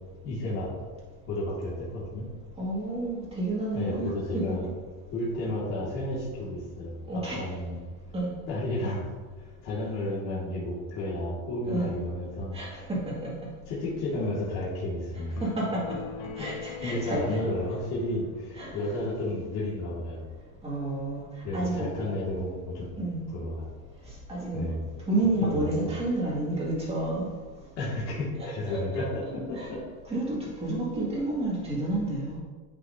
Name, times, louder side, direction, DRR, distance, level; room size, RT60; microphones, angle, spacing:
voice 1, 0.2-0.7 1.3-2.3 3.7-4.7 5.1-7.8 8.5-9.1 9.6-12.6 13.7-15.4 16.4-16.5 16.8-20.2 21.4-22.8 23.3-23.7 24.5-24.9 25.4-25.9 27.8-29.8, left 1 dB, 40° left, -8 dB, 2.0 m, -32 dB
voice 2, 2.6-4.6 7.1-7.5 8.1-8.3 11.7-11.8 12.5-13.3 15.4-15.9 16.4-17.4 18.6-18.7 20.6-21.3 21.5-21.9 23.0-23.2 24.3-24.7 25.1-27.3 28.4-29.0 29.6-29.7 30.1-32.4, right 2 dB, 15° right, -5 dB, 2.0 m, -30 dB
sound 1, 15.4-18.9, left 6 dB, 85° left, 0.7 m, -42 dB
9.9 x 5.8 x 2.7 m, 1.4 s
cardioid pair, 165°, 42 cm